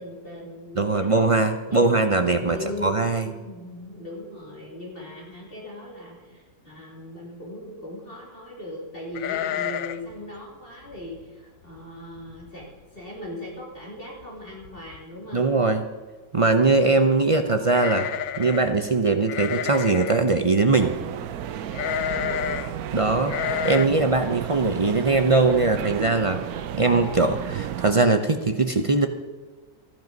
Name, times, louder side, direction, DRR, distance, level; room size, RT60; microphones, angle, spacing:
voice 1, 0.0-1.1 1.6-1.9 2.2-2.9 3.2-12.7 12.9-15.5 21.9-22.6, left 1 dB, 35° left, -4 dB, 3.2 m, -39 dB
voice 2, 0.8-3.3 15.3-15.8 16.3-18.1 18.4-20.9 22.9-23.4 23.6-26.4 26.8-29.1, right 3 dB, 40° right, 6 dB, 0.4 m, -21 dB
sound 1, 9.1-10.1 10.4-10.5 10.9-11.2 11.8-11.9 12.2-12.7 13.0-13.1 14.2-14.3 14.6-15.0 17.7-18.7 19.3-20.2 21.7-22.7 23.3-23.9, left 10 dB, 70° left, 0.9 m, -29 dB
sound 2, 20.8-27.9, right 10 dB, 85° right, 1.2 m, -33 dB
14.5 x 11.0 x 5.3 m, 1.3 s
omnidirectional pair, 1.6 m